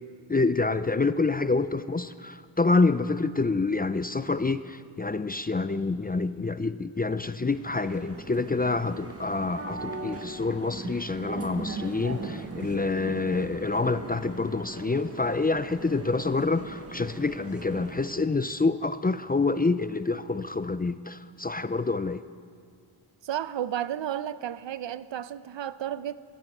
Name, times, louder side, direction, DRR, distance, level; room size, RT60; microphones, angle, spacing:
voice 1, 0.3-22.2, left 3 dB, 20° left, 0.5 m, -27 dB
sound 1, 7.5-18.3, right 3 dB, 30° right, 1.6 m, -40 dB
voice 2, 23.2-26.1, right 10 dB, 60° right, 0.8 m, -32 dB
20.0 x 15.5 x 9.1 m
wide cardioid pair, 105°, 49 cm